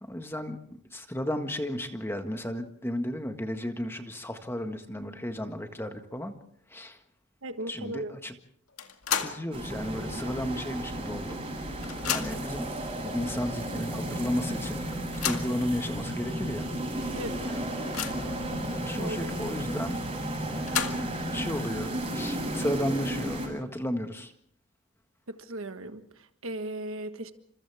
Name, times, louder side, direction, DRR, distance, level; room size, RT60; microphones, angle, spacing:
voice 1, 0.0-6.3 6.7-7.0 7.7-8.3 9.2-11.4 12.1-12.7 13.0-16.7 17.4-17.6 18.7-20.0 20.5-24.3, left 1 dB, 10° left, 1.6 m, -34 dB
voice 2, 7.4-8.1 17.1-17.4 19.0-19.2 25.3-27.3, right 1 dB, 65° right, 1.5 m, -37 dB
sound 1, 8.8-9.5 9.9-10.0 11.1-11.2 11.5-12.6 13.3-13.4 13.8-13.9 14.9-15.6 16.3-16.4 16.8-16.9 17.4-18.4 20.3-21.3, left 8 dB, 85° left, 2.0 m, -33 dB
sound 2, 9.5-23.5, right 1 dB, 25° right, 7.6 m, -33 dB
30.0 x 26.5 x 3.6 m
head